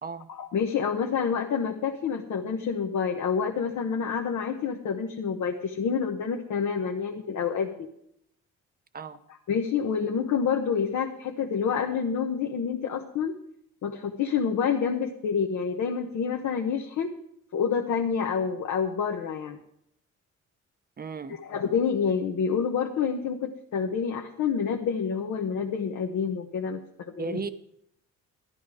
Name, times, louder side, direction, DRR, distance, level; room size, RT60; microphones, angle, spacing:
voice 1, 0.3-7.9 9.5-13.3 13.8-17.1 17.5-19.6 21.4-27.4, left 6 dB, 70° left, 1 dB, 1.2 m, -28 dB
voice 2, 21.0-21.4 27.2-27.5, right 4 dB, 30° right, 12 dB, 0.8 m, -35 dB
12.5 x 10.5 x 4.9 m, 0.73 s
cardioid pair, 90°, 30 cm